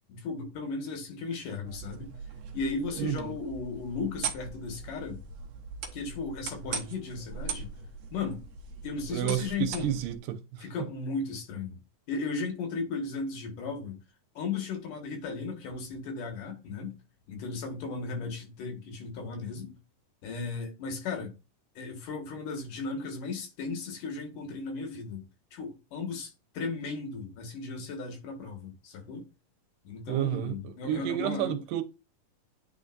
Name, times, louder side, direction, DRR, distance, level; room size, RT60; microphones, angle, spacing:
voice 1, 0.1-2.1 2.5-5.2 5.9-7.7 8.1-8.4 8.8-9.9 10.6-11.8 12.1-14.0 14.3-17.0 17.3-19.8 20.2-21.3 21.8-25.2 25.5-29.3 29.8-31.6, left 4 dB, 70° left, 3.2 m, -36 dB
sound 1, 1.6-10.2, right 5 dB, 65° right, 1.7 m, -40 dB
voice 2, 3.0-3.4 9.1-10.9 30.1-31.8, right 11 dB, 85° right, 2.5 m, -31 dB
9.2 x 4.2 x 2.6 m
omnidirectional pair, 3.9 m